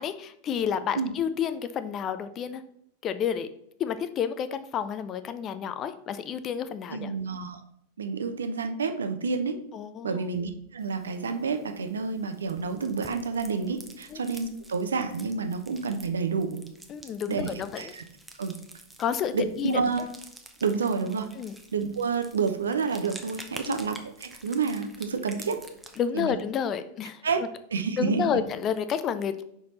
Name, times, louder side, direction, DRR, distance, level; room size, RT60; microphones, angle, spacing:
voice 1, 0.0-2.6 3.0-3.5 3.8-7.1 9.7-10.2 14.1-14.2 16.9-17.9 19.0-19.8 21.4-21.6 23.6-23.8 26.0-27.2 28.0-29.4, left 8 dB, 30° left, 12 dB, 0.5 m, -30 dB
voice 2, 6.9-7.6 8.0-9.6 10.0-16.6 17.3-17.5 17.8-18.0 18.4-18.6 19.3-20.1 20.6-21.3 21.7-25.6 26.1-26.3 27.2-27.4 27.7-28.3, right 5 dB, 70° right, 8 dB, 0.7 m, -29 dB
sound 1, 10.8-26.0, right 1 dB, 5° right, 0.8 m, -49 dB
5.9 x 4.7 x 4.1 m, 0.74 s
figure-of-eight pair, 90°, 0 cm